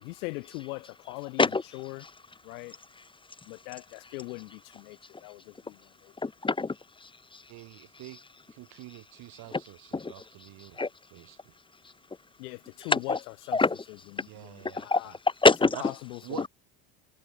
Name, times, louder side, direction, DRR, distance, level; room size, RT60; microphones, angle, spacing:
voice 1, 0.0-1.5 1.7-2.0 2.4-2.8 3.5-6.1 12.4-13.2 13.5-13.6 14.1-15.1 15.8-16.5, left 25 dB, 75° left, 0.9 m, -40 dB
voice 2, 6.2-6.8 7.0-7.4 8.1-8.2 9.5-9.6 9.9-10.2 10.8-10.9 12.8-13.2 13.5-13.8 14.7-15.0 15.4-16.0 16.3-16.5, left 3 dB, 10° left, 0.6 m, -25 dB
voice 3, 7.5-8.2 8.5-10.8 11.1-11.5 14.3-15.2 15.7-15.8 16.2-16.5, right 18 dB, 55° right, 1.3 m, -46 dB
hypercardioid pair, 70°, 45 cm